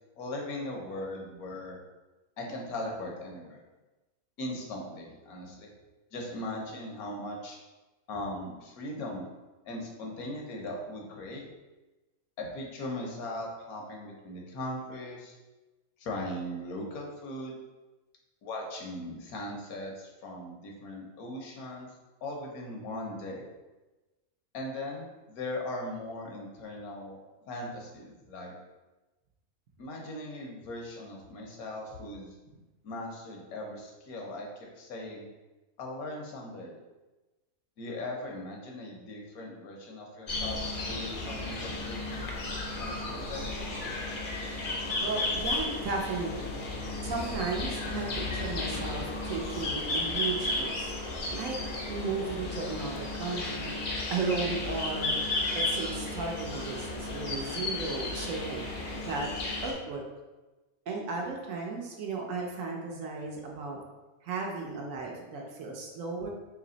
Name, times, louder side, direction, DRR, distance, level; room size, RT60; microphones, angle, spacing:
voice 1, 0.2-1.8 2.4-3.6 4.4-5.7 6.1-7.6 8.1-9.3 9.6-11.5 12.4-15.3 16.0-17.6 18.4-21.9 22.2-23.5 24.5-27.2 27.5-28.5 29.8-32.3 32.8-35.3 35.8-36.8 37.8-42.3 42.8-43.4, left 1 dB, 75° left, -1 dB, 1.3 m, -39 dB
sound 1, 40.3-59.7, left 2 dB, 50° left, 0.7 m, -34 dB
voice 2, 45.0-46.6 47.0-50.9 51.3-51.6 51.9-55.1 55.5-59.3 59.6-60.0 60.9-63.8 64.2-66.3, right 4 dB, 65° right, 0 dB, 1.0 m, -35 dB
3.3 x 3.0 x 3.8 m, 1.1 s
omnidirectional pair, 1.6 m